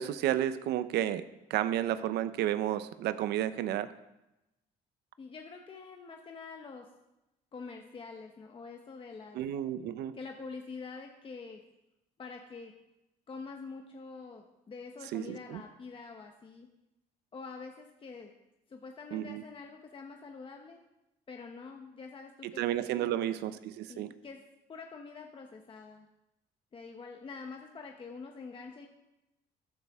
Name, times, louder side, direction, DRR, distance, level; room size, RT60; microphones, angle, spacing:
voice 1, 0.0-3.9 9.3-10.1 15.1-15.6 19.1-19.4 22.4-24.1, right 12 dB, 80° right, 13 dB, 0.7 m, -32 dB
voice 2, 5.2-6.9 7.5-9.4 10.1-11.6 12.2-12.7 13.3-16.7 17.3-18.3 18.7-20.8 21.3-22.6 23.0-23.4 23.9-24.4 24.7-26.1 26.7-28.9, left 4 dB, 30° left, 3 dB, 1.0 m, -46 dB
13.0 x 10.5 x 3.6 m, 0.94 s
cardioid pair, 110°, 17 cm